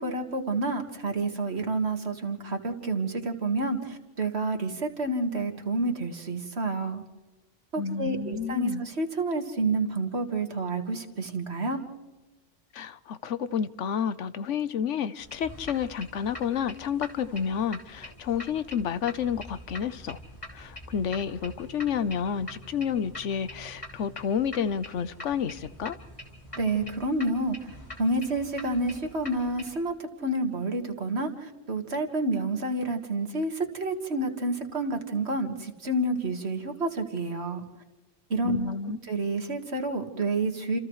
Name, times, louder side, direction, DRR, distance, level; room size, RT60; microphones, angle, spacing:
voice 1, 0.0-7.0 7.7-11.8 26.6-27.6 28.0-37.6 38.3-38.8 39.1-40.8, right 2 dB, 60° right, 5 dB, 2.1 m, -29 dB
voice 2, 7.8-8.8 12.7-20.2 20.5-26.0 38.4-39.0, left 7 dB, 85° left, 14 dB, 1.2 m, -30 dB
sound 1, 15.2-29.8, left 1 dB, 25° left, 3.2 m, -45 dB
29.0 x 28.0 x 3.2 m, 1.1 s
omnidirectional pair, 1.2 m